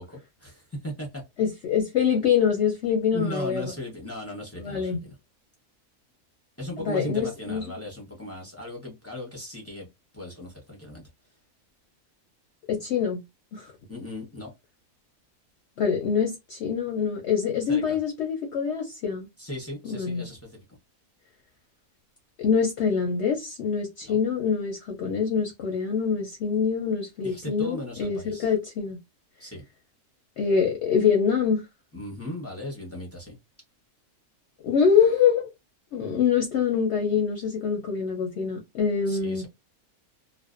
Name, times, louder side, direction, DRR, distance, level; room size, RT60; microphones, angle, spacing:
voice 1, 0.0-1.2 3.1-5.1 6.6-9.9 10.1-11.0 13.9-14.5 17.7-18.0 19.4-20.6 24.0-24.2 27.2-28.5 29.4-29.6 31.9-33.3 39.1-39.5, left 1 dB, 15° left, 0.5 m, -37 dB
voice 2, 1.4-3.7 4.6-5.0 6.8-7.6 12.7-13.2 13.5-13.7 15.8-19.3 19.8-20.2 22.4-29.0 30.4-31.6 34.6-35.5 35.9-39.5, left 6 dB, 60° left, 0.8 m, -25 dB
2.5 x 2.0 x 2.4 m
omnidirectional pair, 1.6 m